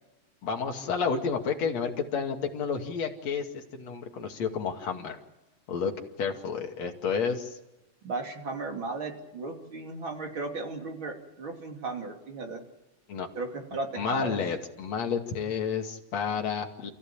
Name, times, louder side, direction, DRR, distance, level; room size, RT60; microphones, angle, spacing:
voice 1, 0.4-5.2 5.7-7.6 13.1-13.3 14.0-16.9, left 6 dB, 55° left, 3 dB, 3.4 m, -31 dB
voice 2, 8.0-12.6 13.4-14.4, right 3 dB, 40° right, 3 dB, 3.5 m, -35 dB
28.5 x 15.0 x 8.8 m, 0.98 s
omnidirectional pair, 3.6 m